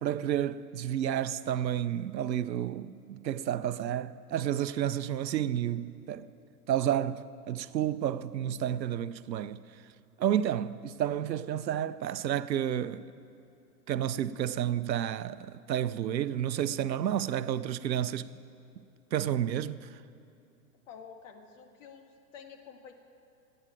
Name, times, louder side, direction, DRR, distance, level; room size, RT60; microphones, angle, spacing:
voice 1, 0.0-6.3 6.7-9.6 10.2-13.1 13.9-18.3 19.1-20.0, right 10 dB, 90° right, 0.7 m, -31 dB
voice 2, 20.9-22.9, left 6 dB, 50° left, 1.8 m, -49 dB
17.0 x 8.9 x 7.8 m
hypercardioid pair, 130°, 50 cm